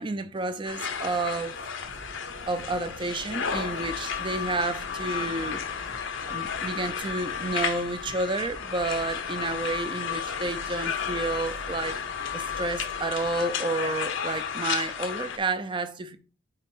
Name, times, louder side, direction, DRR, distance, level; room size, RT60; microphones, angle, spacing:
voice 1, 0.0-1.6 2.5-5.8 6.3-12.0 12.3-16.2, right 2 dB, 25° right, 0.5 m, -30 dB
sound 1, 0.6-15.4, left 7 dB, 65° left, 0.7 m, -33 dB
sound 2, 1.8-13.5, right 1 dB, 80° right, 1.0 m, -48 dB
5.0 x 4.2 x 4.5 m
head